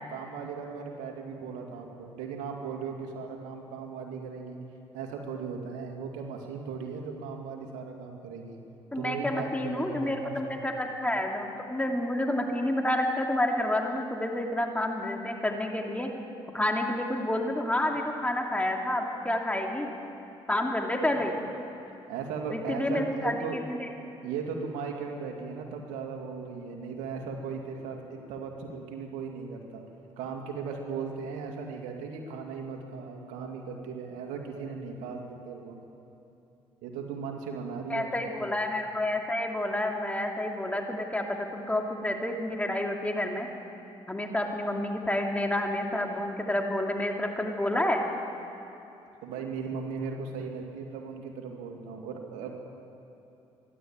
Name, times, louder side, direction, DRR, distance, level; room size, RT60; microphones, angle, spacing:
voice 1, 0.1-4.6 4.9-8.6 8.9-10.7 22.1-23.6 24.2-29.8 30.2-35.8 36.8-38.4 49.2-52.5, right 5 dB, 85° right, 2 dB, 2.5 m, -37 dB
voice 2, 8.9-16.1 16.5-19.9 20.5-21.3 22.5-23.9 37.9-43.5 44.1-48.0, left 1 dB, 10° left, 2 dB, 2.9 m, -29 dB
25.0 x 11.5 x 9.0 m, 2.9 s
supercardioid pair, 65°, 12 cm